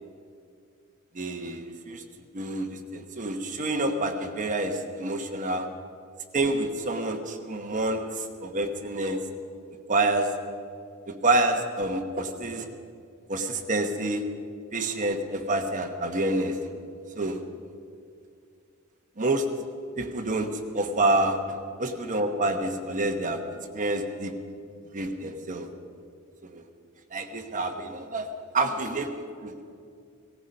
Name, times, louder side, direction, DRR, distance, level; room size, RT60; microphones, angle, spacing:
voice 1, 1.1-2.0 2.3-5.7 6.3-9.2 9.9-10.3 11.1-12.7 13.3-14.2 14.7-16.6 17.1-17.4 19.2-19.4 20.0-20.5 20.7-23.4 23.7-24.3 24.9-25.7 26.4-26.6 27.1-28.3 28.5-29.6, right 2 dB, 35° right, 5 dB, 1.2 m, -28 dB
18.5 x 14.5 x 5.5 m, 2.4 s
head